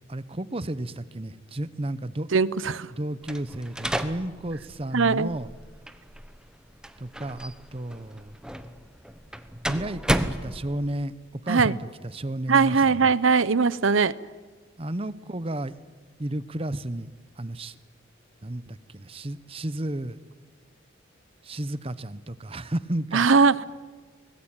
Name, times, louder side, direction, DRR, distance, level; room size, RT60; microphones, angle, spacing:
voice 1, 0.1-2.3 2.9-5.5 7.0-8.4 9.7-11.1 11.4-13.1 14.8-15.7 16.2-17.1 17.4-17.8 18.4-20.2 21.4-23.3, right 1 dB, 30° right, 15 dB, 0.9 m, -32 dB
voice 2, 2.3-2.9 4.9-5.3 11.5-11.7 12.5-14.1 23.1-23.5, right 5 dB, 75° right, 18 dB, 0.8 m, -20 dB
sound 1, 3.2-11.0, right 1 dB, 5° right, 1.0 m, -33 dB
24.5 x 19.5 x 9.0 m, 1.5 s
head